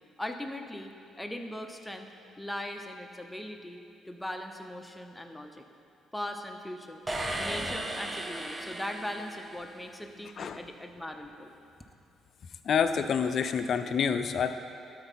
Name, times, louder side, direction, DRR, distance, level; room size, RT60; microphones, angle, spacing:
voice 1, 0.2-2.1 2.4-3.8 4.1-5.6 6.1-11.6, left 1 dB, 10° left, 4 dB, 0.8 m, -39 dB
sound 1, 7.1-9.9, right 1 dB, 25° right, 0.7 m, -36 dB
voice 2, 12.7-14.5, left 6 dB, 60° left, 9 dB, 0.5 m, -27 dB
12.5 x 4.6 x 4.2 m, 2.5 s
supercardioid pair, 60°, 0 cm